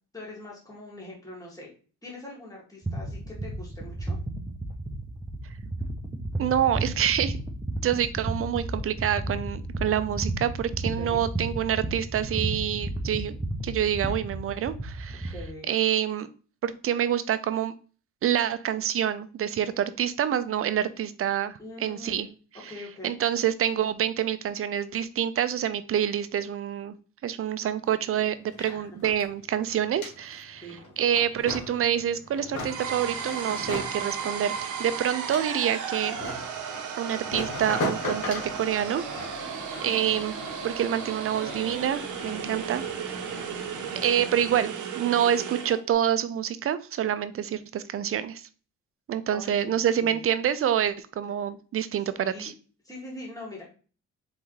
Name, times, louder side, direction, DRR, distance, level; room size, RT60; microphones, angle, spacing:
voice 1, 0.1-1.7 2.0-4.2 10.9-11.3 15.3-15.7 21.6-22.3 22.7-23.2 28.6-28.9 30.6-30.8 39.8-40.2 49.3-50.3 52.2-52.5 52.8-53.6, left 1 dB, 10° left, -4 dB, 2.0 m, -43 dB
sound 1, 2.8-15.5, right 1 dB, 15° right, 0.7 m, -33 dB
voice 2, 6.4-7.4 7.8-13.4 13.6-15.3 15.7-16.3 16.6-17.7 18.2-22.3 22.6-22.7 23.0-27.0 27.2-30.7 31.0-36.2 37.0-39.4 39.8-40.4 40.6-43.3 44.0-48.5 49.1-52.5, right 10 dB, 45° right, 13 dB, 0.5 m, -27 dB
sound 2, 27.8-27.9 28.1-44.7, left 2 dB, 75° left, 1.4 m, -39 dB
sound 3, 32.6-45.8, right 7 dB, 75° right, 0.8 m, -35 dB
4.0 x 3.6 x 3.1 m, 0.38 s
cardioid pair, 90°, 30 cm